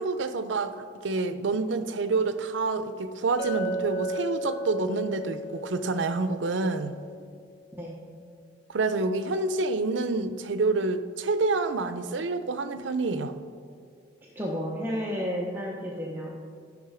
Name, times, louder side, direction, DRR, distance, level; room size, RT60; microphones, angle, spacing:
voice 1, 0.0-7.0 8.7-13.3, right 3 dB, 75° right, 11 dB, 0.6 m, -28 dB
Chink clink, 3.4-7.6, right 1 dB, 60° left, 0.9 m, -35 dB
voice 2, 14.3-16.3, equal, 10° right, -4 dB, 0.8 m, -31 dB
10.5 x 6.5 x 4.9 m, 2.1 s
head